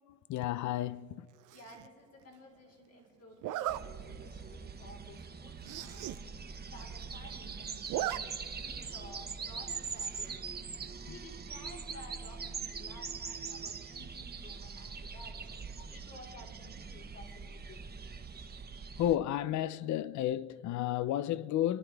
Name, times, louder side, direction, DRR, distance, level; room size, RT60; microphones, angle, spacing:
voice 1, 0.3-1.3 15.8-15.9 19.0-21.8, left 12 dB, 70° left, 0.5 m, -32 dB
voice 2, 1.5-6.3 6.7-15.4 15.9-18.0, left 1 dB, 55° left, 4.1 m, -54 dB
Zipper (clothing), 1.5-1.9 3.4-3.8 4.4-4.5 4.9-5.0 5.2-5.3 5.6-6.2 6.5-6.6 6.8-7.4 7.7-8.2 8.5-8.6 10.0-10.3, right 13 dB, 90° right, 0.6 m, -37 dB
sound 1, 3.7-19.1, right 5 dB, 35° right, 1.0 m, -43 dB
29.5 x 12.0 x 3.4 m
cardioid pair, 90°, 30 cm